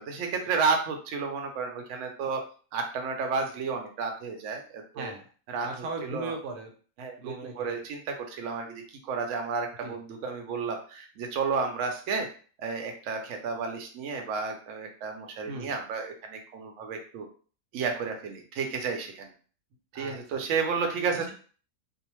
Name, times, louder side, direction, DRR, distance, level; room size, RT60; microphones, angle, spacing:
voice 1, 0.0-2.4 2.7-5.1 5.5-5.7 6.0-6.3 7.0-12.3 12.6-17.3 17.7-19.3 19.9-21.3, right 5 dB, 70° right, 3 dB, 0.9 m, -32 dB
voice 2, 4.9-5.3 5.6-6.7 7.2-7.8 9.8-10.0 15.5-15.7 19.9-20.4 21.1-21.3, right 3 dB, 90° right, 2 dB, 1.2 m, -38 dB
2.6 x 2.0 x 3.0 m, 0.41 s
omnidirectional pair, 1.6 m